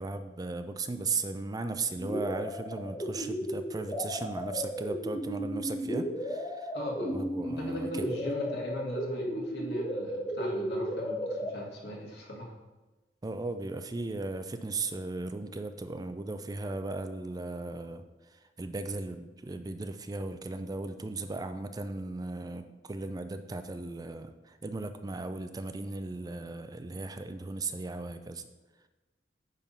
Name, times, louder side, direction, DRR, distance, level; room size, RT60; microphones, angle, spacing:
voice 1, 0.0-6.7 7.1-8.1 13.2-18.0 18.3-28.4, right 3 dB, 20° right, 9 dB, 0.4 m, -37 dB
sound 1, 2.0-11.5, equal, 20° left, 1.0 m, -34 dB
voice 2, 6.7-7.1 7.4-12.5, equal, 70° left, -2 dB, 2.0 m, -39 dB
9.1 x 3.7 x 5.5 m, 1.1 s
head